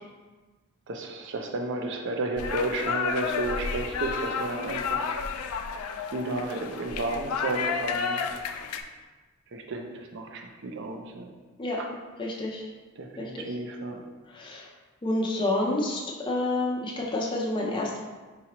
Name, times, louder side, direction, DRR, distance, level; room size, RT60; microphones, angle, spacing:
voice 1, 0.9-5.0 6.1-8.2 9.5-11.3 11.8-11.9 13.0-14.0, right 2 dB, 55° right, 3 dB, 0.5 m, -32 dB
sound 1, 2.4-8.8, left 6 dB, 85° left, 0.3 m, -31 dB
voice 2, 12.2-12.6 13.2-13.5 14.3-14.6 15.0-18.0, left 2 dB, 20° left, -3 dB, 0.5 m, -29 dB
4.8 x 2.9 x 2.9 m, 1.3 s
head